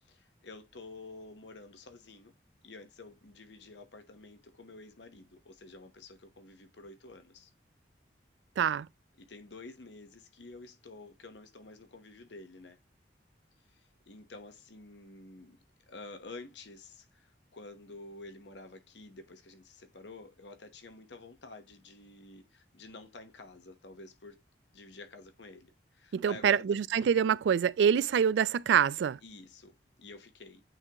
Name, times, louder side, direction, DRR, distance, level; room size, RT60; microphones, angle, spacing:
voice 1, 0.1-2.3 2.6-7.5 9.2-12.8 13.7-15.6 15.9-24.4 24.7-26.9 29.2-30.6, left 3 dB, 75° left, 1.0 m, -50 dB
voice 2, 8.6-8.9 26.1-29.2, right 8 dB, 70° right, 0.3 m, -26 dB
8.9 x 3.7 x 2.9 m
head